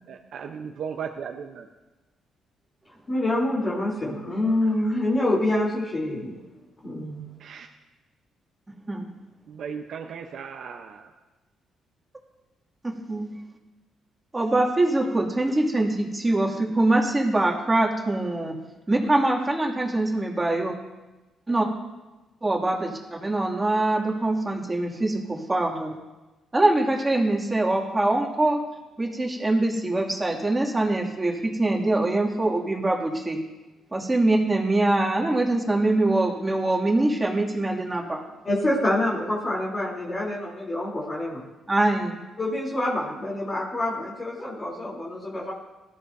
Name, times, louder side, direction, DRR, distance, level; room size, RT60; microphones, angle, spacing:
voice 1, 0.1-1.7 7.4-7.7 9.5-11.1, right 7 dB, 70° right, 3 dB, 0.8 m, -36 dB
voice 2, 3.1-6.4 6.8-7.3 38.5-41.5 42.4-45.5, left 1 dB, 35° left, -4 dB, 3.5 m, -26 dB
voice 3, 12.8-13.3 14.3-18.5 18.9-20.7 21.5-21.7 22.4-26.0 26.5-28.6 29.0-33.4 33.9-38.2 41.7-42.2, right 2 dB, 20° right, -1 dB, 2.5 m, -23 dB
18.5 x 13.5 x 2.7 m, 1.1 s
cardioid pair, 90°, 0 cm